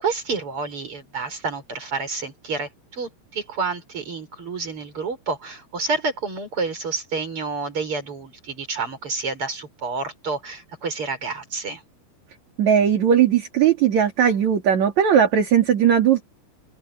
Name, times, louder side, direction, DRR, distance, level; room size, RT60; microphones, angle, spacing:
voice 1, 0.0-11.8, right 4 dB, 25° right, 7.0 m, -29 dB
voice 2, 12.6-16.2, right 8 dB, 45° right, 3.1 m, -18 dB
open air
omnidirectional pair, 5.6 m